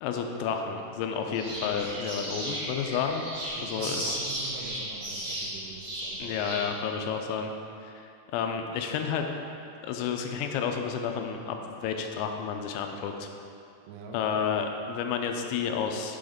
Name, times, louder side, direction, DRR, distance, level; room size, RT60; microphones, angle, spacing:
voice 1, 0.0-3.2 3.6-4.2 6.2-7.5 7.8-7.9 8.3-9.3 9.8-13.3 14.1-16.2, left 7 dB, 85° left, 4 dB, 3.3 m, -31 dB
sound 1, 1.3-6.6, right 1 dB, 45° right, 1.7 m, -35 dB
voice 2, 3.5-6.3 13.8-14.2, right 5 dB, 85° right, 1 dB, 2.5 m, -44 dB
7.5 x 6.3 x 5.1 m, 2.6 s
omnidirectional pair, 5.9 m